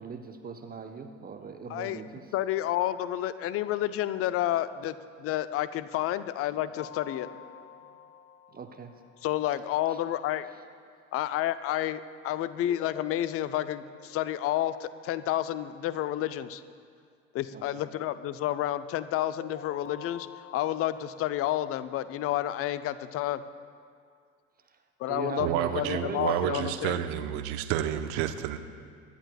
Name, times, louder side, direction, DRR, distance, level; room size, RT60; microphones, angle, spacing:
voice 1, 0.0-2.2 8.5-8.9 9.9-10.0 17.5-17.6 25.1-26.6, right 6 dB, 25° right, 6 dB, 0.9 m, -39 dB
voice 2, 1.7-2.0 2.3-7.3 9.2-10.5 11.1-16.6 17.3-23.4 25.0-27.0, left 13 dB, 35° left, 14 dB, 0.6 m, -30 dB
sound 1, 6.7-9.7 12.6-15.7 19.4-22.6 25.1-26.6, left 7 dB, 85° left, 0.6 m, -49 dB
voice 3, 25.4-28.6, right 11 dB, 55° right, 9 dB, 0.9 m, -30 dB
24.0 x 11.0 x 2.3 m, 2.1 s
figure-of-eight pair, 65°, 40 cm